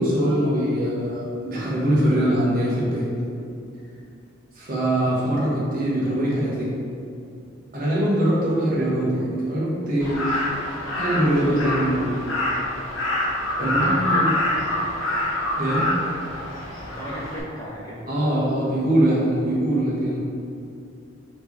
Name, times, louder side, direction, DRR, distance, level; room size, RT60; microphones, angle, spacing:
voice 1, 0.0-3.1 4.5-6.7 7.7-10.2 11.0-12.2 13.6-14.3 15.6-15.9 18.1-20.2, right 1 dB, 45° right, -7 dB, 1.1 m, -22 dB
Crow, 10.0-17.4, left 1 dB, 75° left, 0.8 m, -26 dB
voice 2, 13.6-14.7 16.8-18.0, equal, 15° left, -6 dB, 0.7 m, -34 dB
4.3 x 3.1 x 3.3 m, 2.5 s
head